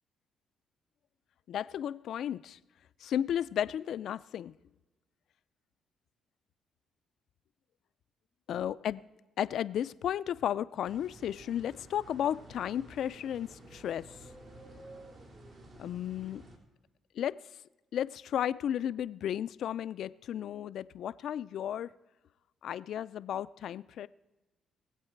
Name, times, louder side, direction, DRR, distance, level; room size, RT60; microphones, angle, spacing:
voice 1, 1.5-2.6 3.0-4.5 8.5-9.0 9.4-14.1 15.8-16.4 17.2-17.4 17.9-21.9 22.6-24.1, left 10 dB, 70° left, 15 dB, 0.4 m, -34 dB
sound 1, 10.8-16.6, right 1 dB, 60° right, 3.2 m, -52 dB
22.0 x 8.2 x 4.5 m, 1.1 s
cardioid pair, 90°, 0 cm